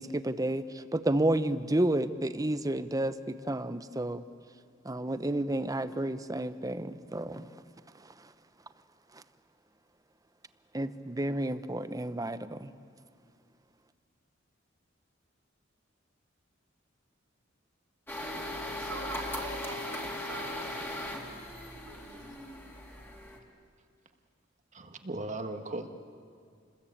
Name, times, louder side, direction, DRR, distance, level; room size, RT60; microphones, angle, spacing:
voice 1, 0.0-4.2 4.8-7.5 8.0-8.1 9.1-9.2 10.7-12.7, right 1 dB, 20° right, 12 dB, 0.8 m, -31 dB
sound 1, 18.1-23.4, left 1 dB, 10° left, 2.8 m, -38 dB
voice 2, 18.8-21.0 21.8-22.3, right 2 dB, 85° right, 2 dB, 7.1 m, -44 dB
voice 3, 24.7-25.9, right 2 dB, 35° right, 6 dB, 1.6 m, -37 dB
29.0 x 21.0 x 8.7 m, 2.2 s
head